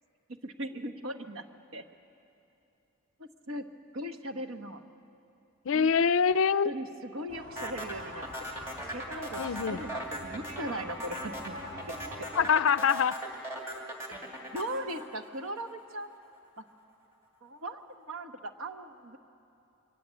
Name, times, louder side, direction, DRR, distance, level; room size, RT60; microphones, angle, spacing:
voice 1, 0.4-1.4 1.7-1.8 3.2-3.7 3.9-4.8 5.7-5.9 6.6-11.6 11.9-12.0 14.5-16.1 16.6-16.7 17.4-19.2, right 1 dB, 70° right, 7 dB, 1.2 m, -39 dB
voice 2, 5.7-6.7 9.4-9.8 12.4-13.1, left 6 dB, 60° left, 17 dB, 0.4 m, -24 dB
sound 1, 7.3-12.5, equal, 45° right, 3.8 m, -45 dB
sound 2, 7.6-15.9, equal, 15° right, 2.4 m, -39 dB
23.5 x 19.0 x 8.3 m, 2.8 s
head